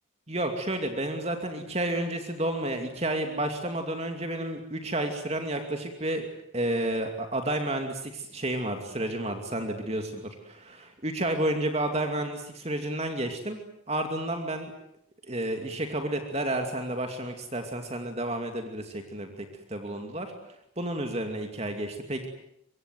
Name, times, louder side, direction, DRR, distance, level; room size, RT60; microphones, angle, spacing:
voice 1, 0.3-6.3 6.5-13.6 13.9-14.7 15.2-22.3, right 1 dB, 30° right, 5 dB, 2.6 m, -31 dB
25.5 x 23.5 x 9.3 m, 0.77 s
head